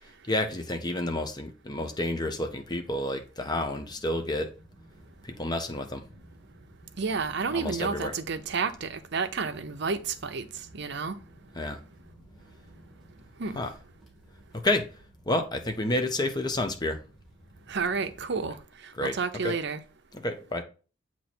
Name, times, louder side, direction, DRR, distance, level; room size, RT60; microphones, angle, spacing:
voice 1, 0.2-4.5 5.2-6.1 7.5-8.1 11.6-11.8 13.5-13.7 14.5-14.9 15.3-17.0 19.0-19.2 19.4-19.6 20.2-20.6, left 1 dB, 20° left, 0.8 m, -29 dB
sound 1, 3.7-18.6, right 1 dB, ahead, 1.7 m, -54 dB
voice 2, 7.0-11.2 13.4-13.6 17.7-18.6 18.8-19.8, right 5 dB, 65° right, 0.7 m, -31 dB
7.8 x 3.0 x 4.3 m
head